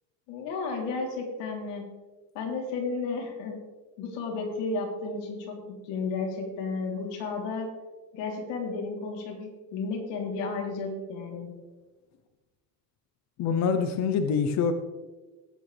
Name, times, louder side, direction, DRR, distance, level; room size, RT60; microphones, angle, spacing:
voice 1, 0.3-1.9 2.4-3.6 4.0-5.6 5.8-7.7 8.1-11.5, left 4 dB, 65° left, 0 dB, 3.5 m, -33 dB
voice 2, 13.4-14.7, left 6 dB, 35° left, 8 dB, 0.8 m, -25 dB
18.5 x 8.5 x 3.4 m, 1.2 s
cardioid pair, 155°, 47 cm